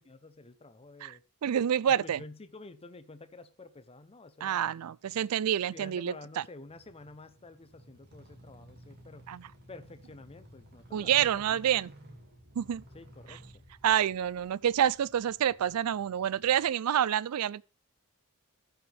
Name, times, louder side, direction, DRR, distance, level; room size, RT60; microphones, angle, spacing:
voice 1, 0.1-1.2 1.9-4.7 5.7-9.3 9.7-11.6 12.9-13.6, left 2 dB, 25° left, 0.7 m, -50 dB
voice 2, 1.0-2.2 4.4-6.4 9.3-9.5 10.9-11.9 12.6-12.8 13.3-13.4 13.8-17.6, right 9 dB, 80° right, 0.4 m, -28 dB
sound 1, 6.6-16.7, equal, 45° right, 2.2 m, -55 dB
15.0 x 5.8 x 3.4 m
head